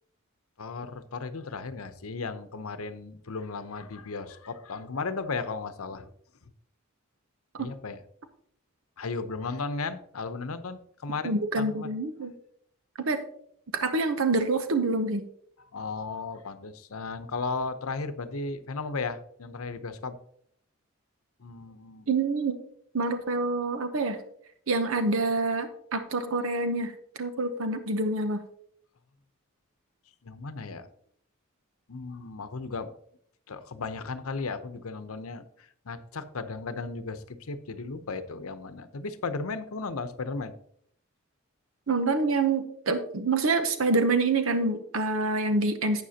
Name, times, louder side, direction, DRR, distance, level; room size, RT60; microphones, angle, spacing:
voice 1, 0.6-6.1 7.6-8.0 9.0-11.9 15.6-20.2 21.4-22.1 30.2-30.9 31.9-32.9 33.5-40.5, left 4 dB, 85° left, 11 dB, 0.8 m, -35 dB
voice 2, 11.2-12.3 13.0-13.2 13.7-15.2 22.1-22.6 22.9-24.2 24.7-28.4 41.9-46.0, right 3 dB, 75° right, 9 dB, 0.8 m, -26 dB
11.5 x 8.4 x 2.8 m, 0.67 s
head